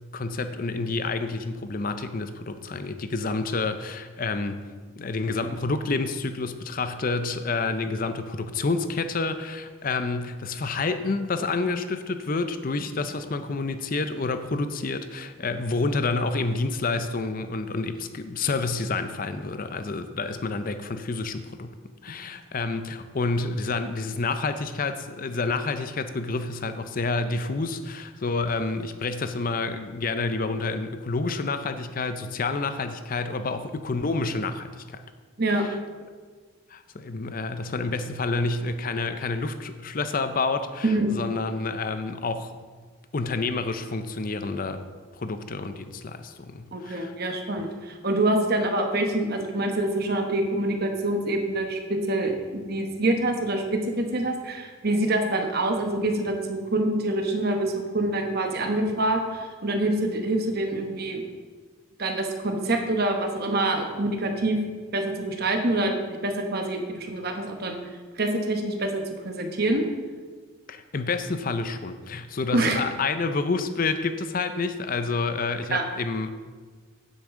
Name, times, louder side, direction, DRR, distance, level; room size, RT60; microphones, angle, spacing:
voice 1, 0.1-4.6 5.0-21.7 22.0-35.0 36.7-42.5 43.1-44.8 45.1-47.1 70.7-76.3, left 3 dB, 40° left, 10 dB, 0.5 m, -29 dB
voice 2, 46.7-61.2 62.0-64.6 64.9-67.8 68.2-69.9 72.5-72.8 75.7-75.8, right 2 dB, 50° right, 4 dB, 1.0 m, -26 dB
9.5 x 8.1 x 3.7 m, 1.5 s
head